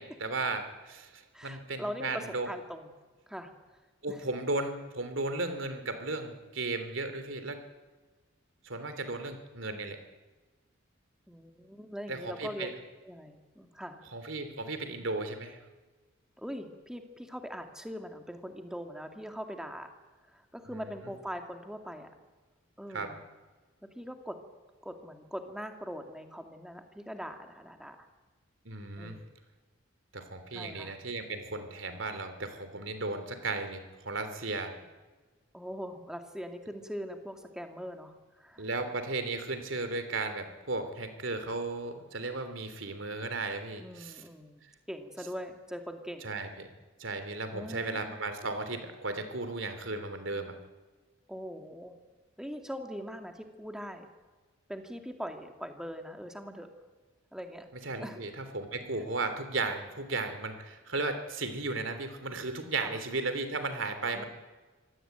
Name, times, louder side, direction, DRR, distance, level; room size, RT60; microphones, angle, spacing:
voice 1, 0.0-2.5 4.0-7.6 8.6-10.0 12.1-12.7 14.1-15.6 22.9-23.1 28.6-29.2 30.1-34.7 38.6-44.2 46.2-46.7 47.0-50.5 57.8-64.3, right 3 dB, 75° right, 8 dB, 3.1 m, -35 dB
voice 2, 1.3-2.9 3.3-3.5 4.1-4.3 11.3-12.7 13.0-14.0 16.4-19.9 20.2-22.1 22.8-23.2 23.9-24.4 24.8-28.1 29.0-29.3 30.5-31.0 35.5-38.7 43.8-44.6 44.9-46.3 47.5-48.1 51.3-52.0 52.4-54.1 54.7-56.7 57.3-57.7 58.0-58.2 59.0-59.1 62.8-63.0 64.1-64.2, equal, 5° right, 5 dB, 2.1 m, -41 dB
25.0 x 18.0 x 9.1 m, 1.3 s
head